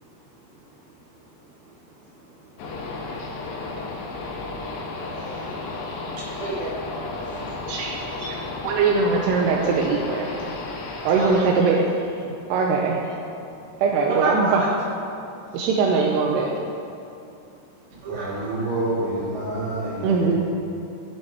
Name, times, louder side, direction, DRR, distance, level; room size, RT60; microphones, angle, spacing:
sound 1, 2.6-11.4, left 3 dB, 75° left, 1.8 m, -33 dB
voice 1, 6.4-7.1 8.2-8.3 11.2-11.5 14.1-14.7 18.0-18.7, right 1 dB, 65° right, -7 dB, 3.1 m, -30 dB
voice 2, 8.6-10.3 11.1-11.8 12.5-13.0 13.8-14.5 15.5-16.5 20.0-20.4, right 4 dB, 85° right, -1 dB, 2.7 m, -21 dB
voice 3, 18.1-20.4, right 1 dB, 50° right, -7 dB, 3.4 m, -28 dB
15.0 x 7.8 x 3.0 m, 2.6 s
omnidirectional pair, 4.9 m